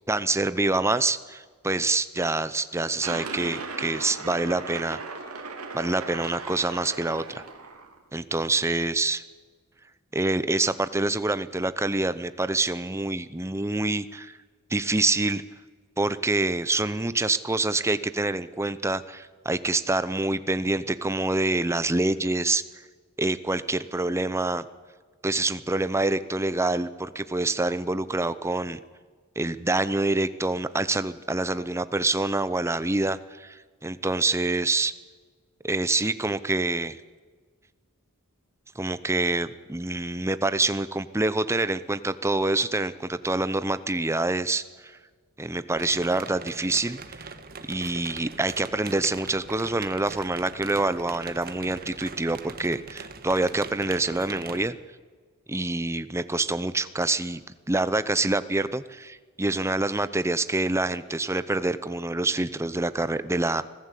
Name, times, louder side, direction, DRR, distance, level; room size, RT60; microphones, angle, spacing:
voice 1, 0.1-5.0 5.7-7.4 8.1-9.2 10.1-14.3 14.7-15.4 16.0-22.6 23.2-24.6 25.2-28.8 29.4-34.9 35.6-37.0 38.8-44.9 45.4-47.3 47.7-54.8 55.5-57.4 57.7-63.6, right 2 dB, 10° right, 14 dB, 0.7 m, -26 dB
sound 1, 3.0-8.0, right 4 dB, 75° right, 2.8 m, -37 dB
sound 2, 45.7-54.7, right 4 dB, 45° right, 1.4 m, -41 dB
25.5 x 15.5 x 8.4 m, 1.5 s
head